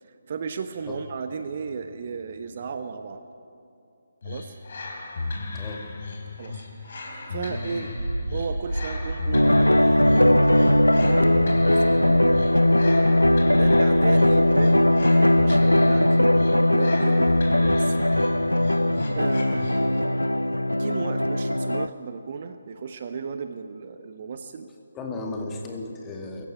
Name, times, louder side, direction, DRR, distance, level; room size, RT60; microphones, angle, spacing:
voice 1, 0.0-3.2 4.2-4.6 6.4-8.0 8.3-14.9 15.2-18.0 19.1-20.4 20.8-24.7, right 5 dB, 40° right, 8 dB, 1.0 m, -35 dB
sound 1, 4.2-20.1, left 3 dB, 45° left, 3.9 m, -35 dB
voice 2, 5.5-5.9 24.9-26.5, left 2 dB, 15° left, 1 dB, 2.3 m, -34 dB
sound 2, 8.0-16.1, right 1 dB, 75° right, 1.5 m, -33 dB
sound 3, 9.3-21.9, left 1 dB, 85° left, 0.7 m, -19 dB
23.5 x 15.0 x 8.9 m, 2.6 s
figure-of-eight pair, 145°, 0 cm